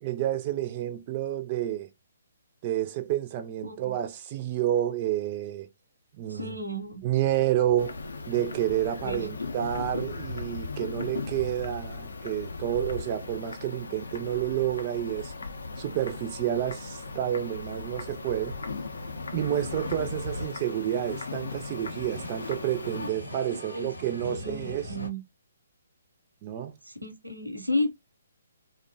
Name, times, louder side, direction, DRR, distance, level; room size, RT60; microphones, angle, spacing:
voice 1, 0.0-1.9 2.6-5.7 6.2-6.5 7.0-8.0 8.3-15.3 15.8-18.6 19.3-24.9 26.4-26.7, right 12 dB, 30° right, 0.3 m, -29 dB
voice 2, 3.6-3.9 6.3-7.0 9.0-9.3 23.5-23.9 24.3-25.2 27.0-27.9, left 1 dB, 90° right, 0.7 m, -32 dB
sound 1, 7.0-25.1, left 2 dB, 85° left, 0.8 m, -42 dB
sound 2, 7.8-23.1, left 4 dB, 65° left, 0.4 m, -39 dB
2.5 x 2.1 x 2.5 m
figure-of-eight pair, 130°, 0 cm